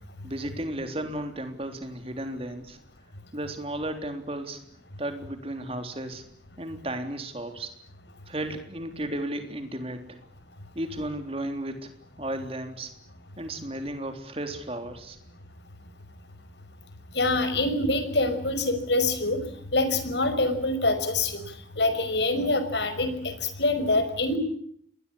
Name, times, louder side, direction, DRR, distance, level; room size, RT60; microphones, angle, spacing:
voice 1, 0.2-2.8 3.3-4.6 5.0-6.2 6.6-7.7 8.3-10.2 10.8-11.9 12.2-12.9 13.4-15.2, right 1 dB, 30° right, 7 dB, 3.6 m, -34 dB
voice 2, 17.1-19.4 19.7-24.4, left 2 dB, 75° left, 10 dB, 5.6 m, -25 dB
28.5 x 21.5 x 8.6 m, 0.65 s
head